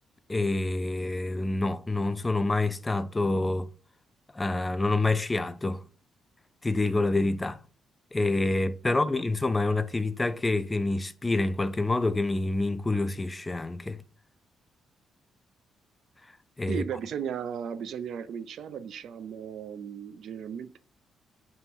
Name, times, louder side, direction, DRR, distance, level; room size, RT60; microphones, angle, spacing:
voice 1, 0.3-3.7 4.3-5.8 6.6-7.6 8.1-14.0 16.6-16.8, left 2 dB, 20° left, 0.3 m, -27 dB
voice 2, 16.7-20.8, right 8 dB, 70° right, 0.4 m, -36 dB
3.5 x 2.5 x 4.3 m
cardioid pair, 90°, 0 cm